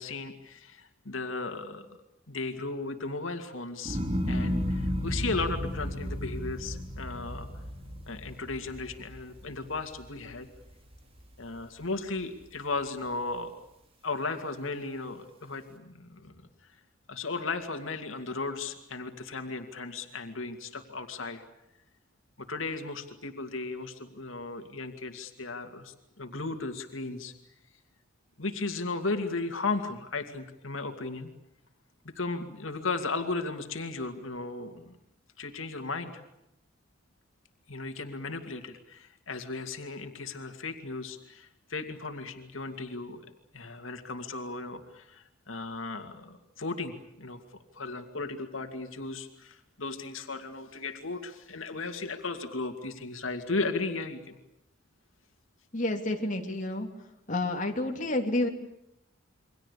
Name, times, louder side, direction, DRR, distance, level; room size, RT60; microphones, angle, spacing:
voice 1, 0.0-1.9 2.3-4.0 4.3-7.5 8.1-10.5 11.4-13.5 14.0-16.3 17.1-21.4 22.4-27.3 28.4-31.3 32.1-34.9 35.4-36.2 37.7-43.2 43.5-47.4 47.7-54.4, left 3 dB, 85° left, 6 dB, 2.5 m, -35 dB
sound 1, 3.8-10.2 10.6-11.2, equal, 30° right, 3.7 m, -33 dB
voice 2, 55.7-56.9 57.3-58.5, left 1 dB, 40° left, 2 dB, 3.0 m, -29 dB
29.0 x 24.0 x 8.5 m, 0.81 s
head